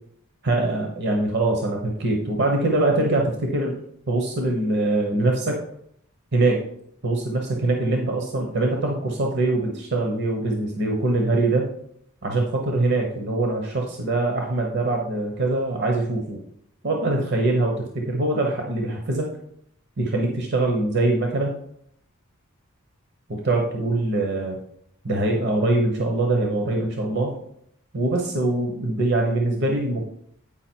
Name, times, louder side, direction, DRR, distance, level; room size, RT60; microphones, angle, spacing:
voice 1, 0.4-3.8 4.1-5.5 6.3-6.6 7.0-11.7 12.2-16.4 16.8-17.7 18.1-19.3 20.0-21.5 23.3-24.6 25.0-27.4 27.9-30.0, right 2 dB, 50° right, 1 dB, 1.0 m, -23 dB
8.8 x 4.9 x 4.5 m, 0.70 s
head